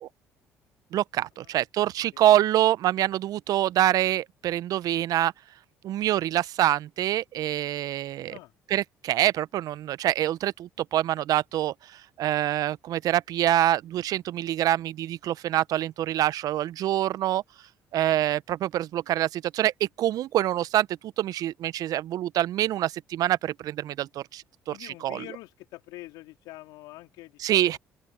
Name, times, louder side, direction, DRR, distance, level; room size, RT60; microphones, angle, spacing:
voice 1, 0.9-5.3 5.8-8.4 8.7-11.7 12.2-17.4 17.9-25.2 27.4-27.8, right 13 dB, 60° right, 0.8 m, -25 dB
voice 2, 24.7-27.8, left 19 dB, 70° left, 3.4 m, -45 dB
open air
hypercardioid pair, 55°, 7 cm